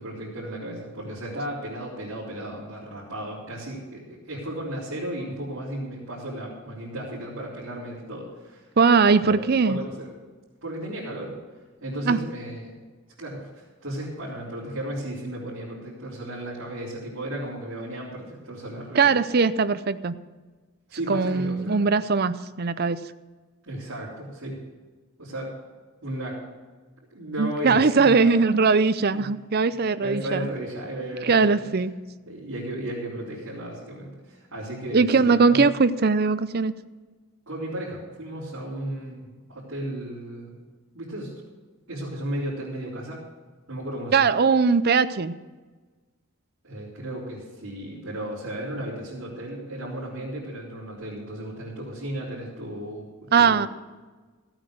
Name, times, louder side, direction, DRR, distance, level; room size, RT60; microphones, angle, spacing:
voice 1, 0.0-8.7 9.2-10.1 10.6-11.3 11.8-12.7 13.2-19.2 20.9-21.8 23.7-24.6 25.2-25.6 26.0-26.4 27.1-28.3 29.1-29.3 30.0-31.7 32.3-35.7 37.5-40.6 40.9-41.3 41.9-43.2 43.7-44.3 46.6-53.1 53.4-53.7, right 1 dB, 65° right, -9 dB, 4.0 m, -34 dB
voice 2, 8.8-9.8 12.0-12.2 19.0-20.1 21.1-23.0 27.4-30.5 31.2-31.9 34.9-36.7 44.1-45.3 53.3-53.7, right 4 dB, 45° right, 14 dB, 0.5 m, -20 dB
15.0 x 8.9 x 6.4 m, 1.3 s
head